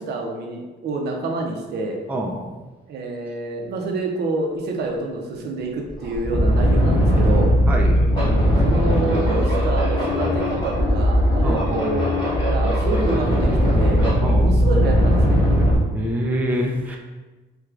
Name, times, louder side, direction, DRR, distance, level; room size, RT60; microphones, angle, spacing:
voice 1, 0.0-2.0 2.9-7.5 8.6-12.1 12.5-15.4, right 2 dB, 65° right, 1 dB, 0.6 m, -27 dB
voice 2, 2.1-2.5 7.7-8.0 11.4-11.7 14.2-14.6 15.9-17.0, equal, 10° right, 0 dB, 0.3 m, -25 dB
sound 1, 5.3-5.4 5.9-15.8, equal, 25° left, 1.3 m, -18 dB
4.5 x 2.3 x 2.4 m, 1.2 s
cardioid pair, 130°, 19 cm